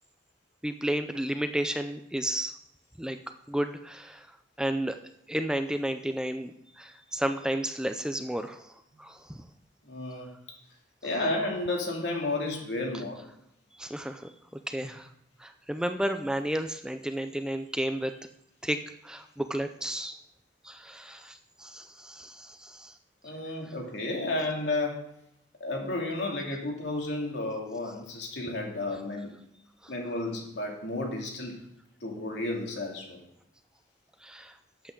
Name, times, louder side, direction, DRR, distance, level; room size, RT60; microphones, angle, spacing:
voice 1, 0.6-2.5 3.0-3.2 3.5-4.3 4.6-5.0 5.3-9.4 13.7-14.3 14.7-15.1 15.4-18.1 18.6-20.2 20.6-22.9 29.8-29.9 34.2-34.5, right 1 dB, 5° right, 8 dB, 0.4 m, -32 dB
voice 2, 9.9-10.3 11.0-13.2 23.2-25.0 25.6-29.3 29.9-31.6 32.0-33.2, left 2 dB, 75° left, 0 dB, 2.6 m, -32 dB
12.0 x 8.2 x 3.8 m, 0.79 s
head